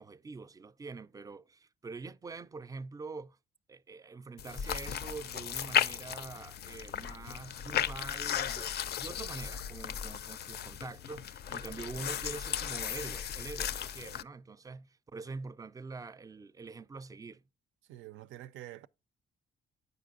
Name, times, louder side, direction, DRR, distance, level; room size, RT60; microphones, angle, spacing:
voice 1, 0.0-3.4 3.7-17.4, right 4 dB, 20° right, 0.3 m, -45 dB
sound 1, 4.4-14.2, left 9 dB, 55° left, 0.4 m, -35 dB
voice 2, 17.9-18.9, right 14 dB, 80° right, 0.5 m, -47 dB
8.1 x 5.1 x 2.4 m
cardioid pair, 90°, 20 cm